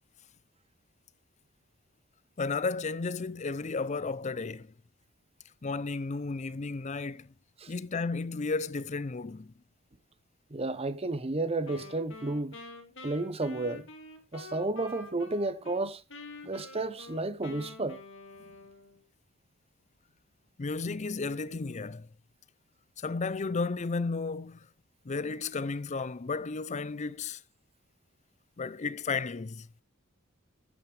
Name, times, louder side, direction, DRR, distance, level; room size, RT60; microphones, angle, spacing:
voice 1, 2.4-4.7 5.6-7.3 7.7-9.5 20.6-22.1 23.0-24.7 25.0-27.4 28.6-29.7, left 4 dB, 35° left, 0.5 m, -33 dB
voice 2, 10.5-12.6 13.0-13.9 14.3-16.0 16.4-18.0, right 2 dB, 30° right, 0.9 m, -32 dB
Wind instrument woodwind instrument, 11.6-15.8 16.1-19.0, left 3 dB, 60° left, 2.4 m, -47 dB
13.0 x 8.8 x 3.3 m
head